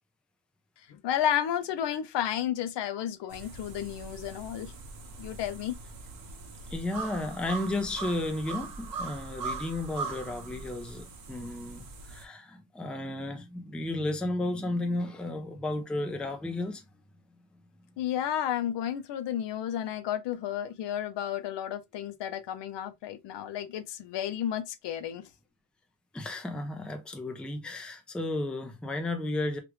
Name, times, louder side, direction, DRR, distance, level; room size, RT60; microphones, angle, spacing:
voice 1, 0.9-4.7 5.2-5.8 18.0-25.2, left 10 dB, 65° left, 0.6 m, -32 dB
sound 1, 3.3-12.2, right 4 dB, 50° right, 1.0 m, -41 dB
voice 2, 6.7-16.8 26.1-29.6, left 2 dB, ahead, 0.5 m, -33 dB
3.2 x 2.5 x 3.0 m
cardioid pair, 120°, 45 cm